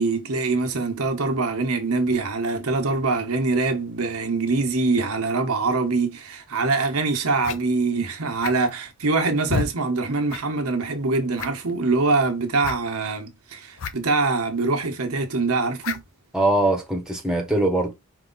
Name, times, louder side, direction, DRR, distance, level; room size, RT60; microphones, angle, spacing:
voice 1, 0.0-16.0, right 3 dB, 75° right, 1.1 m, -24 dB
sound 1, 6.6-6.7 7.4-7.6 8.4-8.8 9.5-9.7 10.3-10.4 10.7-10.8 11.3-11.7 12.6-12.8 13.8-13.9 14.2-14.3 15.8-16.1, left 5 dB, 65° left, 0.7 m, -29 dB
voice 2, 16.3-17.9, right 1 dB, 5° right, 0.9 m, -22 dB
4.8 x 2.7 x 3.9 m
head